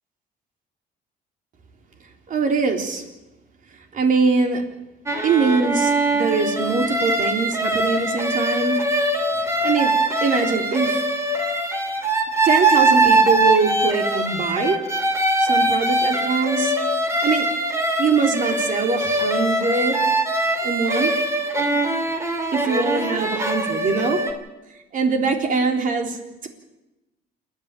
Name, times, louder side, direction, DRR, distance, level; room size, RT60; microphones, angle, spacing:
voice 1, 2.3-3.0 3.9-4.6 5.2-8.8 9.3-9.9 10.2-11.0 12.4-14.8 15.4-16.7 17.2-17.5 18.0-20.0 20.6-21.1 22.5-24.2 24.9-26.2, right 4 dB, 55° right, 4 dB, 3.7 m, -22 dB
sound 1, 5.1-24.3, right 2 dB, 15° right, 3.0 m, -22 dB
28.5 x 10.5 x 9.1 m, 1.0 s
cardioid pair, 110°, 17 cm